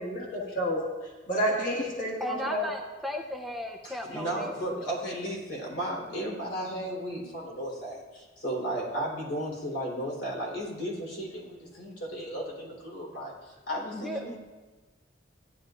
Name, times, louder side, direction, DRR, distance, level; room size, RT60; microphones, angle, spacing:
voice 1, 0.0-2.7, equal, 45° left, -3 dB, 1.9 m, -30 dB
voice 2, 2.2-4.9 13.9-14.3, equal, ahead, 1 dB, 0.6 m, -36 dB
voice 3, 3.8-14.4, right 1 dB, 70° left, -3 dB, 3.8 m, -34 dB
16.5 x 11.0 x 2.5 m, 1.3 s
head